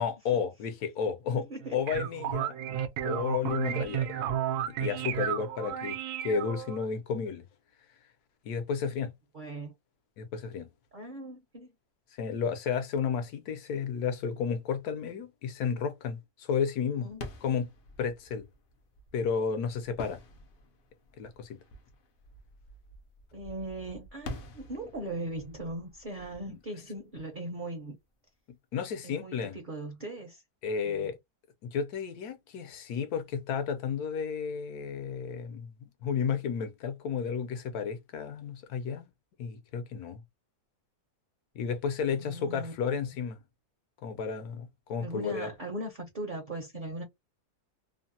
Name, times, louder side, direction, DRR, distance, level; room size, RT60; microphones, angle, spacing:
voice 1, 0.0-1.5 1.7-2.5 3.0-4.2 4.8-6.0 6.2-7.4 8.4-9.1 10.2-10.7 12.2-17.1 17.4-17.7 18.0-18.4 19.1-20.2 21.2-21.6 28.7-29.5 30.6-31.2 31.6-39.1 39.4-40.2 41.5-43.4 44.0-45.5, left 6 dB, 75° left, 1.2 m, -32 dB
voice 2, 1.3-1.8 9.3-9.7 10.9-11.7 17.0-17.2 23.3-27.9 29.0-30.4 30.8-31.2 42.0-42.7 45.0-47.0, right 1 dB, 45° right, 0.7 m, -39 dB
sound 1, 1.6-6.9, right 9 dB, 80° right, 1.1 m, -33 dB
sound 2, 17.1-27.7, left 2 dB, 55° left, 0.6 m, -48 dB
3.1 x 2.1 x 2.6 m
omnidirectional pair, 1.7 m